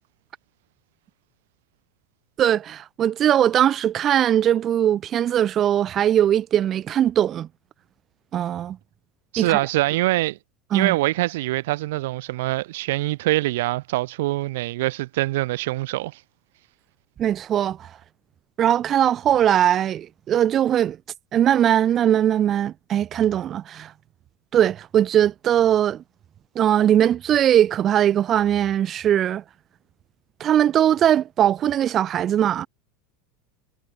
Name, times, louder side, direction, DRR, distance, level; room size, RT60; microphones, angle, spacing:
voice 1, 2.4-7.5 8.3-8.8 9.4-9.6 10.7-10.9 17.2-17.9 18.6-21.0 21.3-23.9 24.5-26.0 26.5-29.4 30.4-32.7, right 10 dB, 35° right, 1.2 m, -20 dB
voice 2, 9.3-10.4 10.7-16.2, right 18 dB, 75° right, 1.0 m, -24 dB
supercardioid pair, 130°, 0 cm